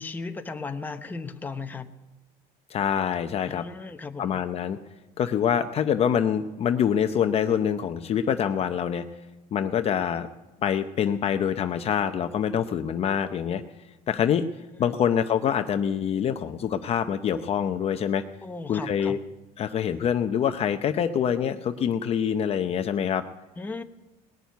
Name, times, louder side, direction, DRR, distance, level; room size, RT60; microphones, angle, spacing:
voice 1, 0.0-1.9 3.5-4.4 14.8-15.0 18.4-19.2 23.6-23.8, left 4 dB, 10° left, 6 dB, 0.9 m, -36 dB
voice 2, 2.7-3.6 4.2-4.8 5.2-9.0 9.5-10.3 10.6-13.6 14.1-14.4 14.8-18.2 18.7-19.2 19.6-23.2, left 8 dB, 35° left, 8 dB, 0.7 m, -25 dB
19.5 x 7.0 x 9.2 m, 1.1 s
cardioid pair, 135°, 17 cm